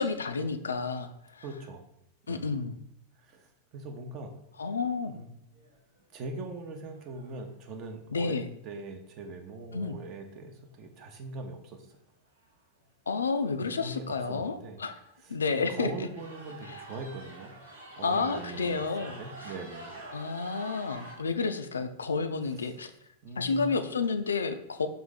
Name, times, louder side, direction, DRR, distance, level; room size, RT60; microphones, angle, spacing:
voice 1, 0.0-1.4 2.3-2.8 4.6-5.1 8.1-8.5 9.7-10.0 13.1-14.9 15.3-15.9 18.0-19.2 20.1-22.9 23.4-24.9, left 4 dB, 70° left, 9 dB, 0.3 m, -30 dB
voice 2, 1.4-1.8 2.2-2.4 3.2-4.3 5.1-5.2 6.1-12.0 13.6-14.8 15.2-17.6 18.0-20.1 22.5-22.7 23.2-23.7, right 2 dB, 40° right, 5 dB, 0.7 m, -41 dB
sound 1, 5.5-6.0 6.5-6.6 6.9-7.5 10.7-10.8 11.9-12.0 12.3-12.6 13.1-13.2 13.9-14.0 14.2-14.4 14.8-15.3 15.8-21.2, right 2 dB, 75° right, 0.9 m, -47 dB
4.8 x 2.6 x 4.0 m, 0.77 s
figure-of-eight pair, 90°, 0 cm